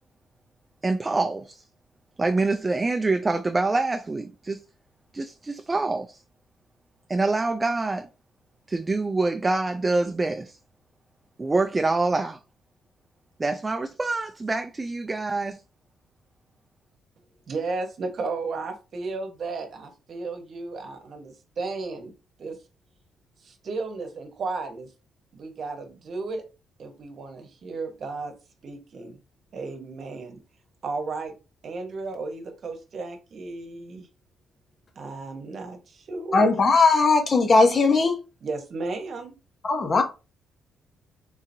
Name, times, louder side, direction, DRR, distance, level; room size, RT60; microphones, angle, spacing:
voice 1, 0.8-1.6 2.2-4.6 5.1-6.2 7.1-8.1 8.7-10.6 11.4-12.4 13.4-15.6, right 3 dB, 25° right, 0.3 m, -25 dB
voice 2, 17.5-22.1 22.4-22.6 23.4-24.9 25.3-26.4 26.8-28.3 28.6-29.2 29.5-30.4 30.8-31.3 31.6-34.1 35.0-36.6 38.4-39.3, right 3 dB, 55° right, 1.0 m, -34 dB
voice 3, 36.3-38.2 39.6-40.0, left 3 dB, 40° left, 0.7 m, -19 dB
3.8 x 2.8 x 2.6 m
cardioid pair, 90°, 0 cm